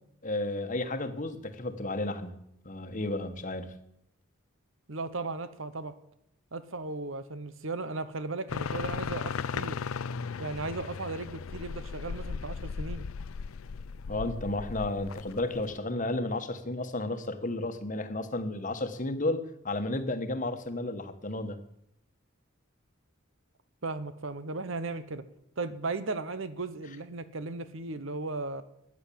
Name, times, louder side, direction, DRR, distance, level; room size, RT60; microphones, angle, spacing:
voice 1, 0.2-2.3 2.6-3.8 14.1-21.6, left 2 dB, 35° left, 9 dB, 1.3 m, -32 dB
voice 2, 4.9-5.9 6.5-9.8 10.4-13.0 23.8-25.2 25.6-28.6, right 3 dB, 65° right, 13 dB, 1.0 m, -36 dB
sound 1, 8.5-15.8, left 5 dB, 80° left, 0.5 m, -37 dB
14.0 x 9.7 x 8.6 m, 0.79 s
head